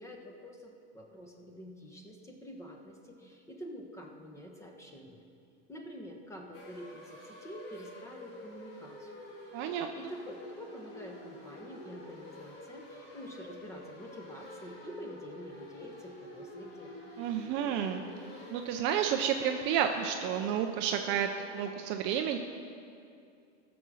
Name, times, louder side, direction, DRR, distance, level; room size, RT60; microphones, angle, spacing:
voice 1, 0.0-5.2 5.7-9.2 10.0-16.9, equal, 10° left, 2 dB, 1.1 m, -47 dB
sound 1, 6.5-21.7, left 1 dB, 65° left, 3.4 m, -48 dB
voice 2, 9.5-9.9 17.2-18.0 18.5-22.4, right 9 dB, 35° right, 5 dB, 0.5 m, -31 dB
15.0 x 6.9 x 6.3 m, 2.5 s
supercardioid pair, 150°, 34 cm